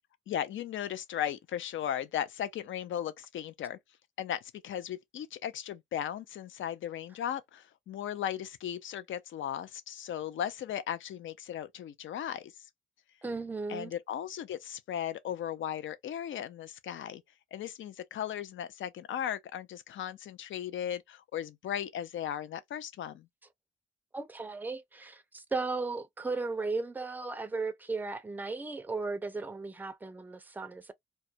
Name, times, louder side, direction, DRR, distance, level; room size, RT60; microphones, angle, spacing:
voice 1, 0.3-3.8 4.2-12.5 13.7-17.2 17.5-23.3, left 10 dB, 80° left, 0.4 m, -36 dB
voice 2, 13.2-13.9 24.1-30.9, right 3 dB, 10° right, 0.4 m, -36 dB
2.3 x 2.1 x 2.6 m
cardioid pair, 75°, 20 cm